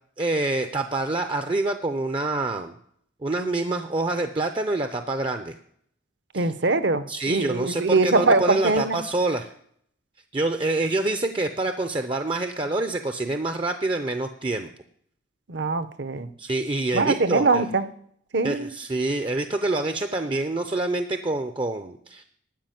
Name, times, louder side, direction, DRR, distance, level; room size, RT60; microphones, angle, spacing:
voice 1, 0.2-2.7 3.2-5.6 6.3-6.5 7.1-9.5 10.3-14.7 16.4-17.7 18.4-22.2, right 2 dB, 25° right, 7 dB, 0.5 m, -26 dB
voice 2, 6.3-9.0 15.5-16.3 16.9-17.8 18.3-18.7, right 3 dB, 60° right, 12 dB, 0.8 m, -22 dB
12.0 x 5.5 x 9.1 m, 0.66 s
head